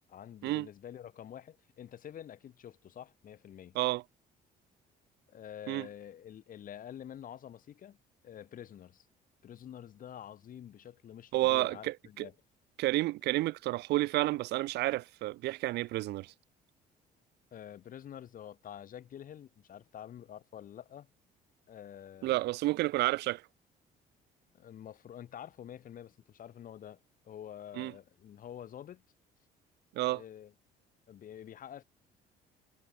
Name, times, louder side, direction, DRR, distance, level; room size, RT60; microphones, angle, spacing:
voice 1, 0.1-3.8 5.3-8.0 8.2-9.1 9.4-12.3 17.5-21.1 21.7-22.4 24.5-27.0 27.2-29.0 30.1-30.5 31.1-31.8, left 10 dB, 55° left, 6.4 m, -48 dB
voice 2, 11.3-12.3 12.8-16.3 22.2-23.4 27.8-27.9 29.9-30.2, right 18 dB, 80° right, 1.4 m, -30 dB
cardioid pair, 110°, 17 cm